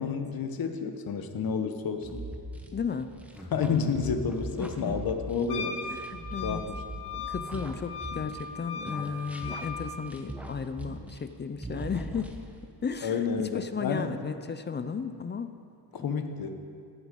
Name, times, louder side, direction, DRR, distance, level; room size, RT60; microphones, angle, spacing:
voice 1, 0.0-2.2 3.5-5.8 6.4-6.8 13.0-14.1 15.9-16.6, left 6 dB, 60° left, 7 dB, 1.0 m, -30 dB
sound 1, 2.0-8.6 8.9-11.4 11.6-12.7, right 1 dB, 5° right, 0.9 m, -40 dB
voice 2, 2.7-3.1 4.5-5.0 5.9-6.7 7.1-12.3 12.8-15.5 16.0-16.4, left 5 dB, 30° left, 10 dB, 0.4 m, -35 dB
Wind instrument woodwind instrument, 5.5-9.8, left 6 dB, 85° left, 1.1 m, -38 dB
14.5 x 8.0 x 5.3 m, 2.4 s
wide cardioid pair, 145°, 40 cm